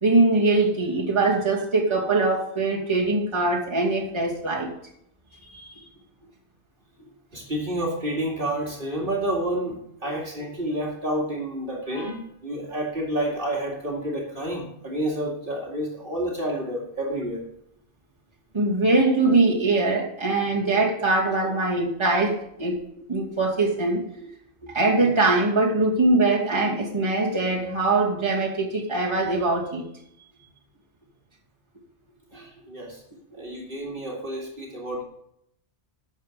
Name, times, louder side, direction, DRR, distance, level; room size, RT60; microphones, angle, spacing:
voice 1, 0.0-4.7 5.5-5.7 18.5-22.8 23.1-24.3 24.7-29.8, right 2 dB, 25° right, -3 dB, 2.5 m, -22 dB
voice 2, 7.3-17.4 32.3-33.0 33.3-35.0, right 1 dB, 55° right, -1 dB, 2.4 m, -29 dB
12.0 x 7.9 x 5.1 m, 0.74 s
omnidirectional pair, 1.1 m